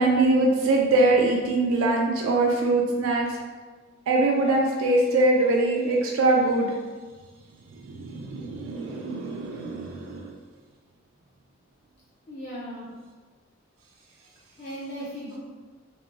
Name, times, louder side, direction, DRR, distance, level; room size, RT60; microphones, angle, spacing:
voice 1, 0.0-3.4 4.1-6.7 7.8-10.3, right 2 dB, 85° right, 0 dB, 0.3 m, -23 dB
voice 2, 12.3-13.0 14.6-15.4, equal, 45° left, -8 dB, 0.5 m, -37 dB
2.9 x 2.2 x 2.4 m, 1.4 s
head